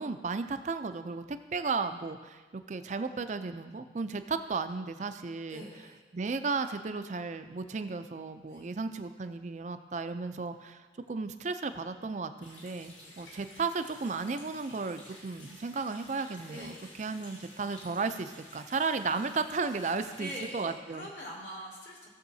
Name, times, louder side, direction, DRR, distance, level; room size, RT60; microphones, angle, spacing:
voice 1, 0.0-5.6 6.1-21.1, right 4 dB, 40° right, 9 dB, 0.4 m, -34 dB
voice 2, 5.5-6.0 8.5-8.7 13.0-13.1 16.5-16.9 19.8-22.1, equal, 65° left, -4 dB, 2.4 m, -44 dB
Water tap faucet, 12.4-20.5, left 1 dB, 85° left, 2.9 m, -52 dB
16.0 x 7.1 x 2.7 m, 1.3 s
head